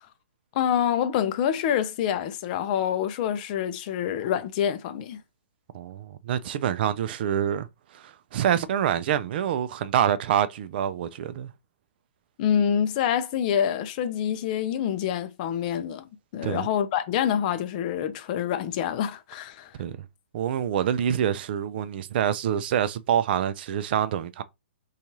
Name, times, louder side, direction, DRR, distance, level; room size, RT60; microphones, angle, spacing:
voice 1, 0.5-5.2 12.4-16.1 16.3-19.7, left 9 dB, 40° left, 0.4 m, -26 dB
voice 2, 5.7-7.7 7.9-11.5 16.4-16.7 19.8-19.9 20.3-24.4, right 9 dB, 50° right, 0.4 m, -26 dB
2.6 x 2.3 x 3.0 m
hypercardioid pair, 140°, 7 cm